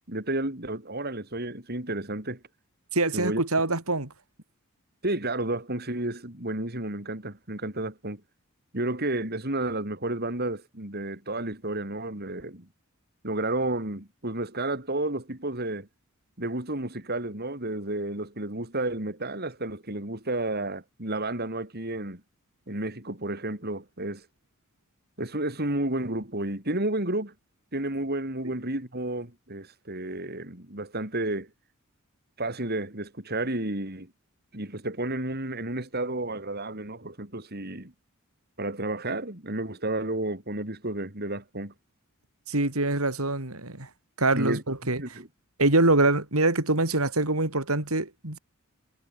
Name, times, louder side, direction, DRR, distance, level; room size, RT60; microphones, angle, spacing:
voice 1, 0.0-2.4 3.1-3.4 5.0-8.2 8.7-12.7 13.2-15.9 16.4-22.2 22.7-24.3 25.2-27.3 27.7-31.5 32.4-34.1 34.5-37.9 38.6-41.7 44.3-45.3, right 2 dB, 50° right, 5.4 m, -31 dB
voice 2, 2.9-4.1 42.5-43.9 44.2-45.0 45.6-48.4, right 2 dB, 85° right, 4.8 m, -24 dB
head